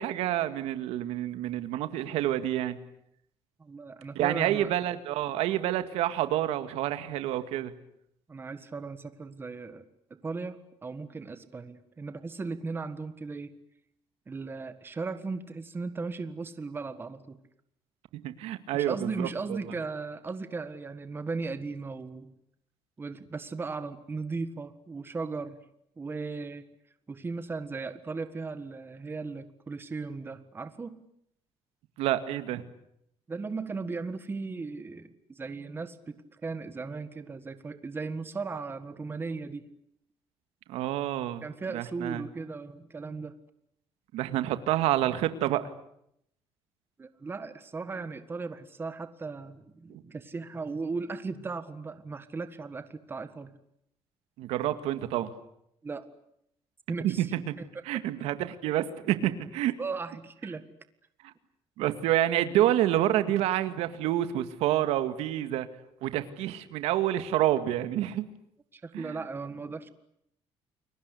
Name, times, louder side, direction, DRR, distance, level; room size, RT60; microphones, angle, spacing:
voice 1, 0.0-2.8 4.2-7.7 18.1-19.3 32.0-32.6 40.7-41.4 41.7-42.2 44.1-45.6 49.9-50.0 54.4-55.3 57.0-57.6 57.9-59.7 61.8-65.7 66.0-68.2 68.9-69.2, right 13 dB, 90° right, 11 dB, 2.0 m, -28 dB
voice 2, 3.6-4.7 8.3-9.8 10.1-13.6 14.3-17.4 18.7-22.3 23.0-25.6 26.0-26.7 27.1-31.0 33.3-39.7 41.4-43.4 47.0-53.5 55.8-56.1 56.9-57.8 59.8-60.7 68.7-69.9, right 4 dB, 20° right, 11 dB, 1.7 m, -37 dB
30.0 x 22.5 x 8.3 m, 0.75 s
cardioid pair, 135°, 10 cm